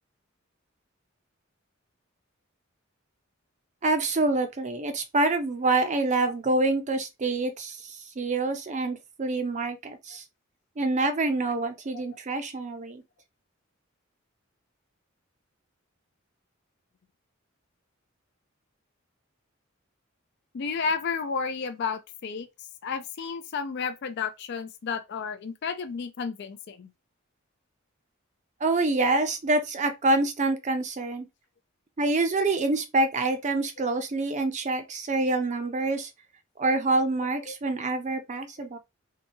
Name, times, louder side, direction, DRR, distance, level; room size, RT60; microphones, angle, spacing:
voice 1, 3.8-10.2 10.8-13.0 28.6-31.3 32.0-36.1 36.6-38.8, right 2 dB, 35° right, 0.5 m, -26 dB
voice 2, 20.5-22.5 22.8-26.9 37.5-37.6 38.6-38.7, left 5 dB, 55° left, 0.4 m, -32 dB
2.8 x 2.2 x 2.7 m
head